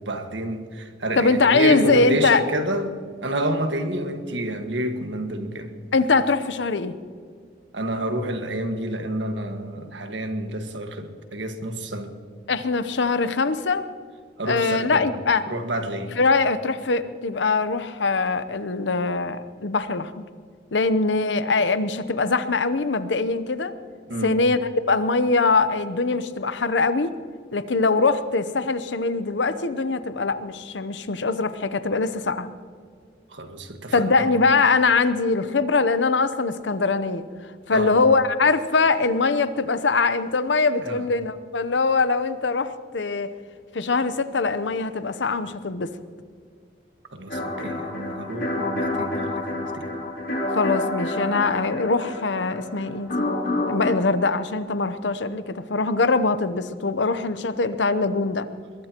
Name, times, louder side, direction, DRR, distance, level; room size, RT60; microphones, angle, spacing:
voice 1, 0.0-2.9 3.2-5.7 7.7-12.1 14.4-15.1 15.5-16.1 24.1-24.3 33.3-34.3 37.7-37.9 40.8-41.0 47.1-49.9, right 1 dB, 85° right, 1.6 m, -29 dB
voice 2, 1.2-2.4 5.9-7.0 12.5-13.9 14.4-15.5 16.1-20.3 20.7-23.7 24.2-27.1 27.5-32.5 33.9-37.3 37.7-43.3 43.7-45.9 50.5-53.3 53.7-58.5, left 3 dB, 80° left, 0.8 m, -22 dB
sound 1, 47.3-53.9, left 2 dB, 50° left, 3.0 m, -28 dB
22.0 x 21.5 x 3.0 m
head